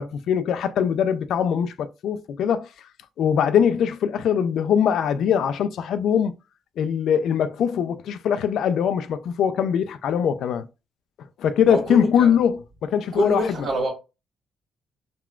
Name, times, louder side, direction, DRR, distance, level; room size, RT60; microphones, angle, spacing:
voice 1, 0.0-2.7 3.2-6.3 6.8-10.7 11.4-13.4, left 8 dB, 75° left, 0.3 m, -22 dB
voice 2, 11.6-12.3 13.1-13.9, right 1 dB, 65° right, 1.4 m, -26 dB
3.5 x 2.2 x 2.3 m
cardioid pair, 90°, 0 cm